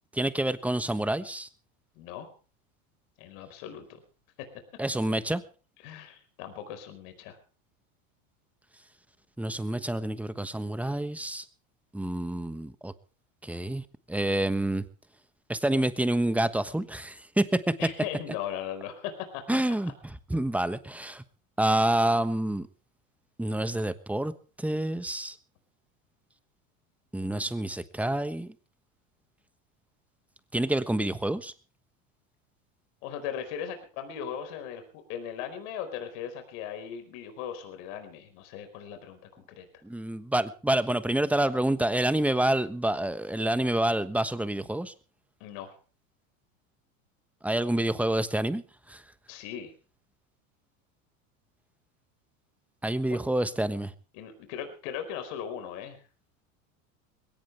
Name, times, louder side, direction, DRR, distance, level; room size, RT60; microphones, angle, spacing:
voice 1, 0.1-1.5 4.8-5.4 9.4-11.4 11.9-12.9 13.4-13.8 14.1-14.8 15.5-17.7 19.5-21.2 21.6-22.7 23.4-25.4 27.1-28.5 30.5-31.5 39.8-44.9 47.4-48.6 48.9-49.0 52.8-53.9, right 1 dB, 5° right, 12 dB, 1.2 m, -28 dB
voice 2, 2.0-2.3 3.2-4.0 4.4-4.5 5.8-7.4 17.8-19.4 33.0-39.7 45.4-45.7 49.3-49.7 53.1-53.2 54.1-56.0, left 9 dB, 65° left, 8 dB, 4.7 m, -38 dB
21.0 x 17.5 x 3.4 m, 0.37 s
supercardioid pair, 115°, 40 cm